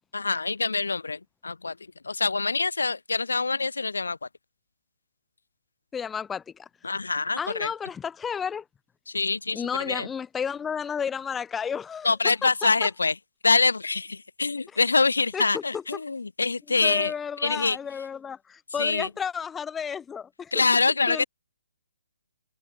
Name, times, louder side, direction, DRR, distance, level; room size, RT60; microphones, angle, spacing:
voice 1, 0.1-1.8 2.0-4.3 6.8-7.7 9.1-10.1 12.0-13.2 13.4-17.1 17.4-17.8 18.8-19.1 20.5-21.2, left 4 dB, 75° left, 0.9 m, -25 dB
voice 2, 5.9-6.7 7.4-8.6 9.5-12.1 12.4-12.7 15.3-15.8 16.8-20.6 21.1-21.2, left 7 dB, 10° left, 0.4 m, -32 dB
figure-of-eight pair, 135°, 0 cm